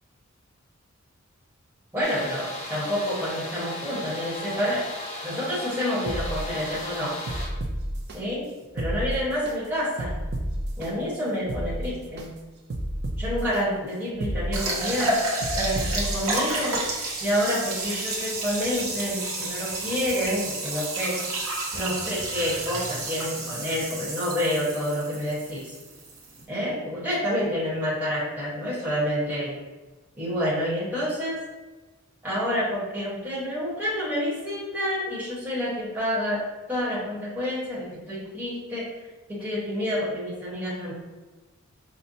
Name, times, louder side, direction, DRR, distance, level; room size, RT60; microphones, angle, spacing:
voice 1, 1.9-4.8 5.2-7.2 8.1-8.5 8.7-10.2 10.8-12.4 13.2-15.2 15.5-16.8 17.2-21.2 21.7-25.7 26.5-29.6 30.1-31.4 32.2-36.4 36.7-38.9 39.3-40.9, equal, 10° right, -9 dB, 1.1 m, -28 dB
sound 1, 2.0-7.5, left 1 dB, 30° left, 0.6 m, -36 dB
sound 2, 6.1-6.8 7.3-8.2 8.6-9.5 10.0-10.9 11.3-12.3 12.7-13.6 14.1-15.0 15.4-16.3 16.8-16.9, right 1 dB, 50° right, 0.4 m, -31 dB
sound 3, 14.5-26.4, right 2 dB, 75° right, 0.9 m, -31 dB
5.3 x 2.1 x 2.6 m, 1.2 s
head